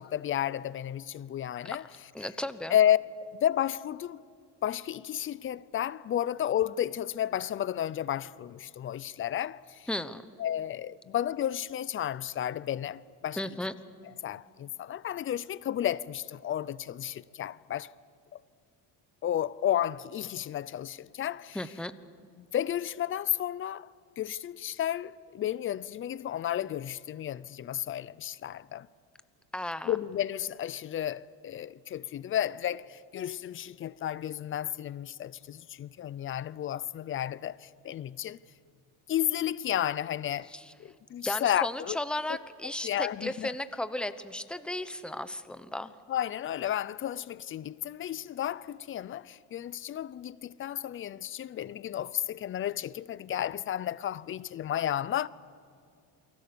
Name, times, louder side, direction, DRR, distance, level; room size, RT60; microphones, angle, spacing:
voice 1, 0.0-1.8 2.7-4.2 4.6-9.9 10.4-13.4 14.2-17.9 19.2-21.6 22.4-23.9 24.2-28.9 29.9-38.4 39.1-40.5 40.8-42.0 42.3-42.4 42.6-43.5 46.1-55.3, left 11 dB, 35° left, 0.6 m, -32 dB
voice 2, 2.1-2.7 9.9-10.2 13.4-13.7 21.5-21.9 29.5-30.0 40.5-40.7 41.2-45.9, left 1 dB, 5° left, 1.0 m, -35 dB
29.0 x 24.0 x 7.0 m
cardioid pair, 130°, 35 cm